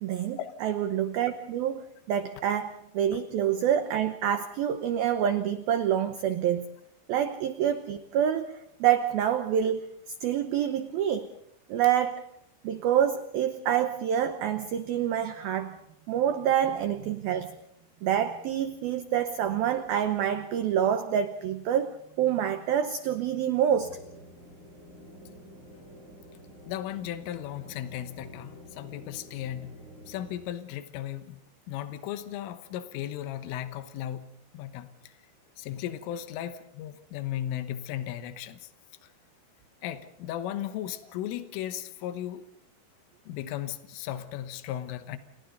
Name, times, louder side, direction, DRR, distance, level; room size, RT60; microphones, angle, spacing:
voice 1, 0.0-6.7 7.1-9.9 10.2-11.3 11.7-12.3 12.6-15.8 16.1-17.6 18.0-24.0, right 9 dB, 80° right, 9 dB, 2.1 m, -27 dB
sound 1, 23.7-30.4, equal, 25° right, 3.8 m, -49 dB
voice 2, 26.7-29.8 30.1-31.4 31.7-35.2 35.6-38.7 39.0-39.1 39.8-42.5 43.3-45.2, left 11 dB, 85° left, 9 dB, 3.7 m, -36 dB
29.5 x 28.5 x 4.0 m, 0.72 s
omnidirectional pair, 5.7 m